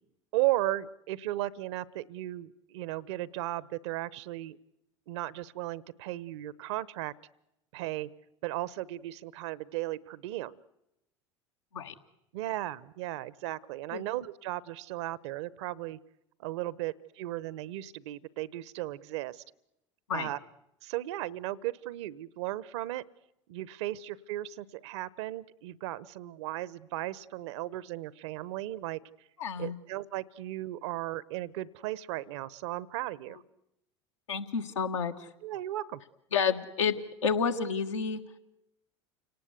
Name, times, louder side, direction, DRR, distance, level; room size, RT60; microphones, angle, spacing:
voice 1, 0.3-4.6 5.1-7.1 7.7-8.1 8.4-10.6 12.3-16.0 16.4-19.4 20.1-20.4 20.8-23.0 23.5-29.0 29.6-33.4 35.4-36.0, right 15 dB, 65° right, 21 dB, 0.8 m, -35 dB
voice 2, 29.4-29.8 34.3-35.3 36.3-37.0 37.2-38.2, left 6 dB, 80° left, 5 dB, 1.6 m, -30 dB
29.5 x 18.5 x 8.1 m, 0.88 s
hypercardioid pair, 75°, 16 cm